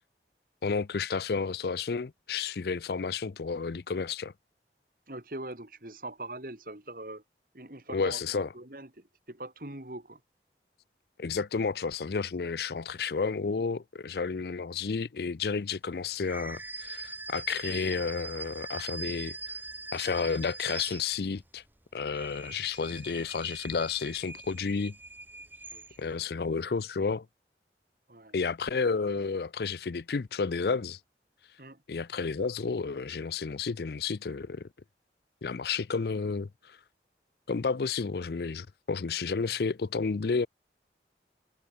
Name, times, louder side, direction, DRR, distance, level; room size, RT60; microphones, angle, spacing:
voice 1, 0.6-4.3 7.9-8.5 11.2-19.6 19.9-21.6 21.9-25.0 26.0-27.3 28.3-31.0 31.9-34.7 35.4-36.8 37.5-40.5, left 5 dB, 65° left, 0.5 m, -31 dB
voice 2, 5.1-7.2 7.5-10.2 25.7-26.3 28.1-28.3 31.6-31.8, right 2 dB, 50° right, 2.6 m, -43 dB
sound 1, 16.2-21.5 22.0-26.2, right 3 dB, 10° right, 1.1 m, -42 dB
head